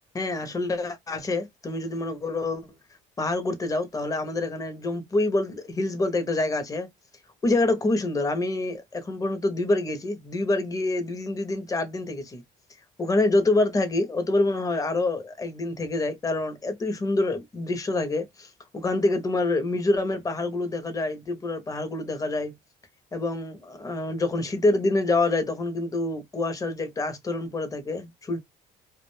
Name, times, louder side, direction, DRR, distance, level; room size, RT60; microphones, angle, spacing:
voice 1, 0.1-2.7 3.2-6.9 7.4-12.4 13.0-22.5 23.1-28.4, left 2 dB, 20° left, 0.6 m, -26 dB
2.3 x 2.1 x 3.0 m
cardioid pair, 110°, 17 cm